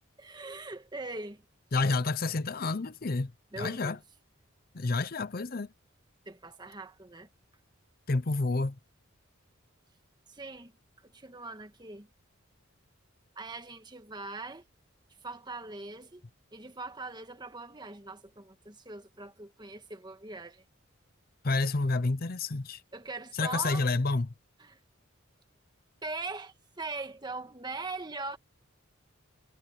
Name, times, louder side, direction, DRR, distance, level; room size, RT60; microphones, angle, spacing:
voice 1, 0.2-1.4 3.5-4.0 6.2-7.3 10.3-10.7 11.0-12.1 13.3-14.6 15.2-16.2 16.5-20.6 22.9-23.8 24.6-24.8 26.0-28.4, right 3 dB, 20° right, 1.5 m, -41 dB
voice 2, 1.7-3.3 3.6-4.0 4.7-5.7 8.1-8.8 21.4-22.8 23.3-24.3, left 3 dB, 45° left, 0.7 m, -29 dB
head